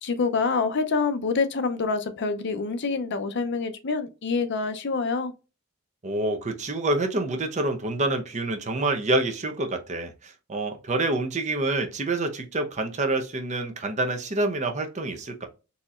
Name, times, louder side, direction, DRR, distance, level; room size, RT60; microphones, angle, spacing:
voice 1, 0.0-5.3, left 4 dB, 55° left, 0.5 m, -26 dB
voice 2, 6.0-15.5, right 2 dB, 35° right, 0.6 m, -27 dB
4.1 x 2.9 x 2.4 m
head